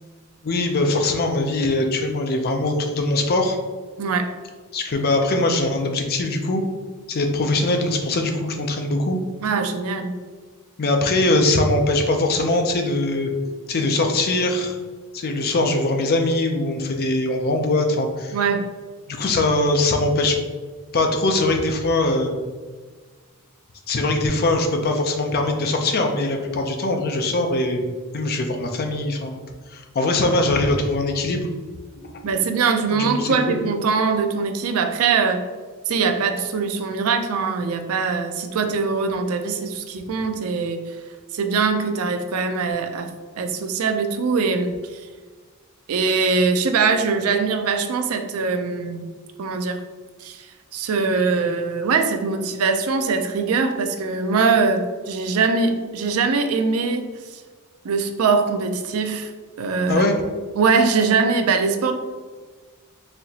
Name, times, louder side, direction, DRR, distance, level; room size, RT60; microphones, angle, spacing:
voice 1, 0.4-3.6 4.7-6.6 7.1-9.2 10.8-13.3 13.7-14.8 15.1-18.4 19.1-20.4 20.9-22.3 23.9-27.8 28.1-29.4 29.7-31.5 32.1-32.4 32.9-33.6 59.9-60.2, left 2 dB, 45° left, 4 dB, 0.5 m, -22 dB
voice 2, 4.0-4.3 9.4-10.2 18.3-18.6 32.2-35.4 35.9-40.8 41.3-43.1 43.4-44.7 45.9-49.1 49.4-49.8 50.2-50.5 50.7-57.4 57.8-59.3 59.6-60.1 60.5-61.9, right 4 dB, 70° right, 6 dB, 0.4 m, -22 dB
4.1 x 2.9 x 2.7 m, 1.4 s
head